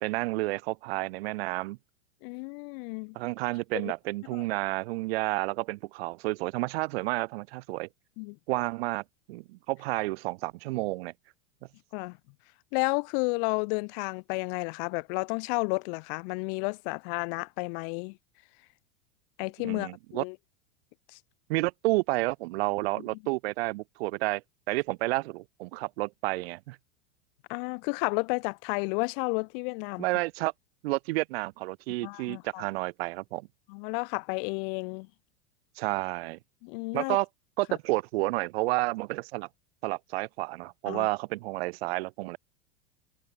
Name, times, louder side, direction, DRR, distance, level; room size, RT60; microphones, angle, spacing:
voice 1, 0.0-1.8 3.1-7.9 8.5-9.0 9.3-11.1 19.6-20.2 21.5-24.4 24.7-26.8 30.0-30.5 30.8-33.5 35.8-36.4 36.9-37.3 37.6-39.5 39.8-42.4, right 21 dB, 65° right, 0.8 m, -30 dB
voice 2, 2.2-3.2 3.7-3.9 4.3-4.4 8.2-8.4 11.9-12.2 12.7-18.2 19.4-20.4 21.1-21.2 27.5-30.0 32.0-32.7 33.7-35.1 36.6-37.2 37.7-37.8 40.9-41.1, left 36 dB, 50° left, 0.7 m, -32 dB
hypercardioid pair, 100°, 34 cm